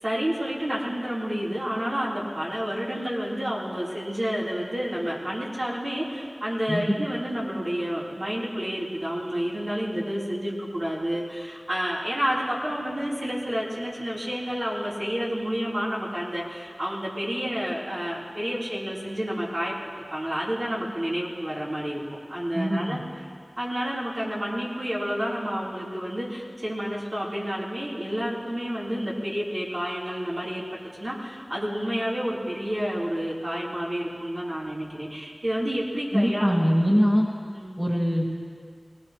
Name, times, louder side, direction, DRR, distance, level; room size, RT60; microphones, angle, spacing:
voice 1, 0.0-22.0 22.3-23.0 23.6-30.6 31.0-36.6 37.5-37.8, equal, 65° right, -7 dB, 3.7 m, -30 dB
voice 2, 22.5-23.0 36.1-37.2 37.8-38.3, equal, 10° right, -1 dB, 1.5 m, -22 dB
21.0 x 19.0 x 3.1 m, 2.1 s
wide cardioid pair, 55°, 0 cm